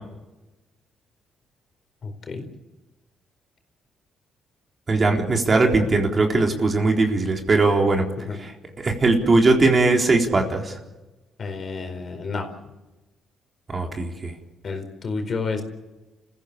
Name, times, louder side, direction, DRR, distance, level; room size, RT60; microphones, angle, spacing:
voice 1, 2.0-2.5 8.2-8.4 11.4-12.5 14.6-15.6, left 4 dB, 45° left, 6 dB, 4.6 m, -30 dB
voice 2, 4.9-8.1 8.4-8.5 8.8-10.8 13.7-14.3, right 3 dB, 35° right, 2 dB, 3.9 m, -20 dB
29.5 x 15.5 x 8.5 m, 1.1 s
cardioid pair, 90°, 0 cm